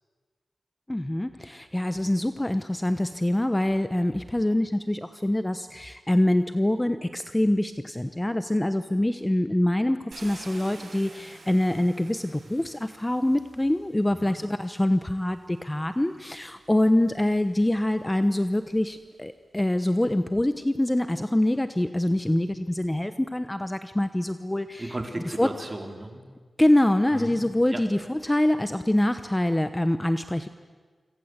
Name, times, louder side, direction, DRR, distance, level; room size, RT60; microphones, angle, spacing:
voice 1, 0.9-24.9 25.4-25.5 26.6-30.5, left 1 dB, 15° left, 10 dB, 1.0 m, -25 dB
Car, 10.1-14.2 15.2-15.3 15.8-19.1, right 3 dB, 80° right, 7.7 m, -50 dB
voice 2, 24.8-26.2 27.1-27.4 27.7-27.8, right 1 dB, 25° right, 4 dB, 4.1 m, -35 dB
27.5 x 25.5 x 8.2 m, 1.5 s
wide cardioid pair, 80°, 0 cm